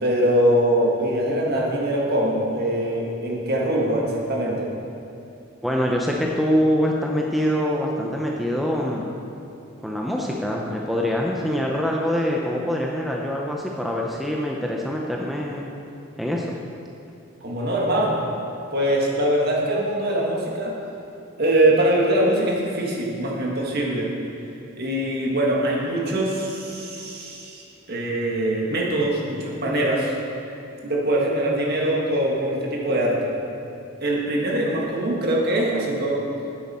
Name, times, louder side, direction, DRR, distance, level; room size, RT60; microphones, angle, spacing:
voice 1, 0.0-4.7 17.4-18.2 18.7-20.7 21.4-24.1 24.8-30.1 30.8-33.3 34.0-36.2, right 1 dB, 50° right, -2 dB, 1.6 m, -23 dB
voice 2, 5.6-9.1 9.8-15.7 16.2-16.6, equal, ahead, -2 dB, 0.5 m, -24 dB
9.6 x 8.1 x 4.3 m, 2.7 s
head